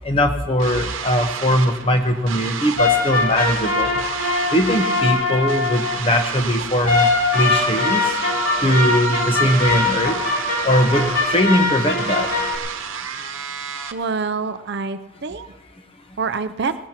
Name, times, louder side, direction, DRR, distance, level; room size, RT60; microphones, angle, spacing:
voice 1, 0.0-3.9 4.5-7.1 7.3-8.1 8.6-10.2 10.6-12.3, equal, 30° left, 6 dB, 1.1 m, -20 dB
sound 1, 0.6-13.9, right 7 dB, 90° right, 1.1 m, -30 dB
sound 2, 2.8-6.1 6.8-12.6, left 3 dB, 60° left, 3.0 m, -22 dB
voice 2, 13.9-15.5 16.2-16.8, right 4 dB, 60° right, 11 dB, 0.5 m, -26 dB
18.5 x 18.0 x 2.9 m, 1.2 s
head